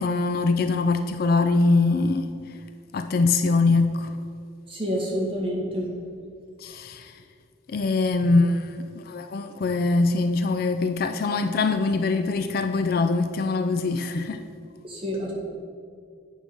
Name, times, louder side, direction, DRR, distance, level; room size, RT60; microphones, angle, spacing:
voice 1, 0.0-2.3 2.9-4.2 6.6-7.2 7.7-14.4, left 3 dB, 45° left, 0.3 m, -23 dB
voice 2, 4.7-5.9 14.8-15.3, equal, 25° right, 1.8 m, -28 dB
9.0 x 4.9 x 5.3 m
head